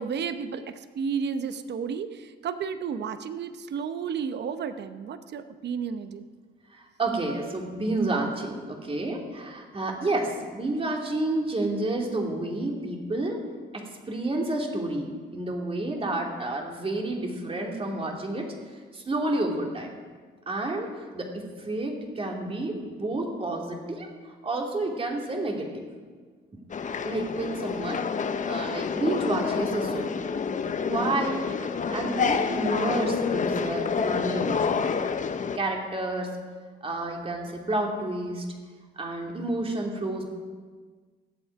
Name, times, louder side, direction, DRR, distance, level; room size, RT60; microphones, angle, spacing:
voice 1, 0.0-6.3, right 6 dB, 60° right, 10 dB, 0.9 m, -32 dB
voice 2, 6.7-13.4 13.7-18.5 18.9-19.9 20.5-20.9 21.1-25.9 26.5-26.6 27.0-28.0 28.4-30.1 30.9-34.9 35.5-36.4 36.8-38.4 39.0-40.2, right 2 dB, 30° right, 0 dB, 2.8 m, -30 dB
sound 1, 26.7-35.6, left 5 dB, 40° left, 0.8 m, -28 dB
20.5 x 8.1 x 4.8 m, 1.5 s
cardioid pair, 90°, 20 cm